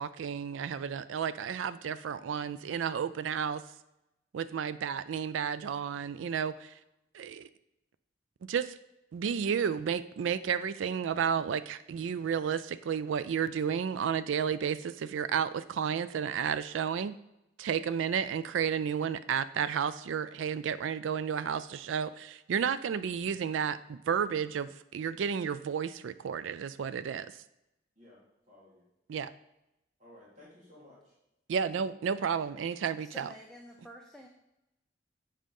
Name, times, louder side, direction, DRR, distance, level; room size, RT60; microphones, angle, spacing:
voice 1, 0.0-3.6 4.3-6.7 7.1-7.5 8.5-8.7 9.1-17.1 17.6-27.3 29.1-29.3 31.5-33.3, right 7 dB, 85° right, 14 dB, 0.3 m, -32 dB
voice 2, 27.9-28.8 30.0-31.1, left 1 dB, 35° right, -8 dB, 3.1 m, -56 dB
voice 3, 33.0-34.3, equal, 5° left, 0 dB, 0.5 m, -49 dB
7.6 x 5.0 x 5.3 m, 0.89 s
head